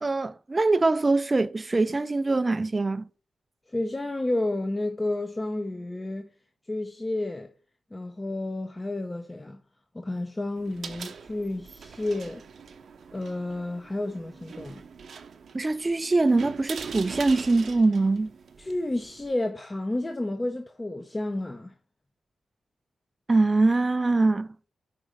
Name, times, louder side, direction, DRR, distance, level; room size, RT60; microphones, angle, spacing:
voice 1, 0.0-3.1 15.5-18.3 23.3-24.5, right 3 dB, 30° right, 0.3 m, -23 dB
voice 2, 3.7-6.3 6.7-7.5 7.9-9.6 9.9-12.4 13.1-14.8 18.6-21.7, left 2 dB, 25° left, 0.6 m, -31 dB
sound 1, 10.6-19.3, right 6 dB, 70° right, 0.6 m, -42 dB
5.0 x 4.0 x 5.0 m
cardioid pair, 65°, 0 cm